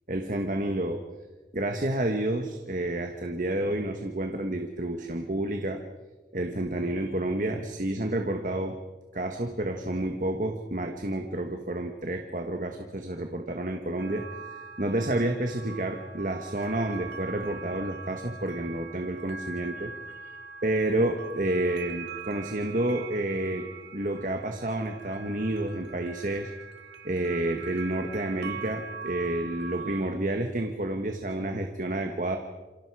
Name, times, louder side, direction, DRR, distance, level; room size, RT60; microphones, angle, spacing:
voice 1, 0.1-1.0 1.5-5.8 6.3-8.7 9.1-14.2 14.5-19.9 20.2-20.3 20.6-23.6 23.9-26.5 27.0-32.4, right 1 dB, 45° right, 4 dB, 1.4 m, -30 dB
sound 1, 14.0-30.0, right 5 dB, 85° right, 1.9 m, -42 dB
27.5 x 27.0 x 4.9 m, 1.2 s
head